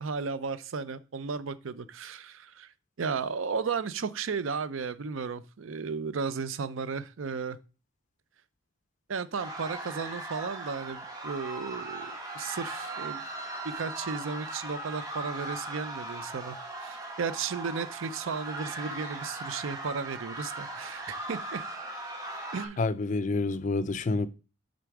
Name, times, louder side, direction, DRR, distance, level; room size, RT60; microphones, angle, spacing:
voice 1, 0.0-2.7 3.0-7.6 9.1-13.2 13.6-16.6 16.8-21.6 22.5-22.8, right 5 dB, 75° right, 0.5 m, -34 dB
sound 1, 9.4-22.7, right 2 dB, 15° right, 1.3 m, -39 dB
voice 2, 22.8-24.3, left 3 dB, 40° left, 0.4 m, -28 dB
6.8 x 4.0 x 4.8 m
head